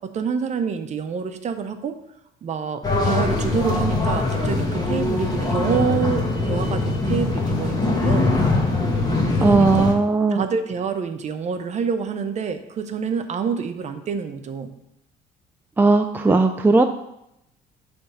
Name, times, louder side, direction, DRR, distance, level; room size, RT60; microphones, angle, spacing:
voice 1, 0.0-1.9 2.4-8.3 9.3-9.9 10.3-14.8, right 6 dB, 45° right, 7 dB, 0.8 m, -27 dB
sound 1, 2.8-9.9, left 2 dB, 25° left, 1.3 m, -22 dB
voice 2, 9.4-10.4 15.8-16.8, right 3 dB, 10° right, 5 dB, 0.4 m, -17 dB
8.8 x 3.4 x 5.6 m, 0.81 s
cardioid pair, 110°, 17 cm